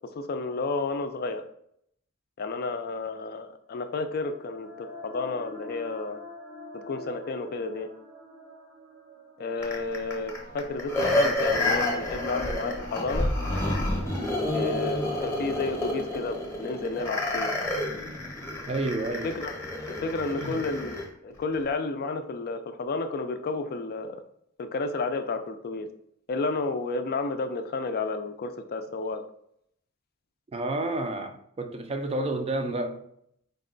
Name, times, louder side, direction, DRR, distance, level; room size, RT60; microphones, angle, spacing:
voice 1, 0.2-1.4 2.4-6.2 6.7-7.9 9.4-13.3 14.5-17.5 19.2-19.6 19.8-24.2 24.6-25.9 26.3-29.2, left 3 dB, 45° left, 0.4 m, -31 dB
sound 1, 3.8-17.4, equal, 65° right, 0.8 m, -44 dB
sound 2, 9.6-21.1 21.5-21.6, left 1 dB, 10° left, 0.8 m, -29 dB
voice 2, 18.7-19.4 20.3-20.6 30.5-33.0, right 2 dB, 30° right, 0.4 m, -30 dB
4.0 x 2.2 x 3.7 m
head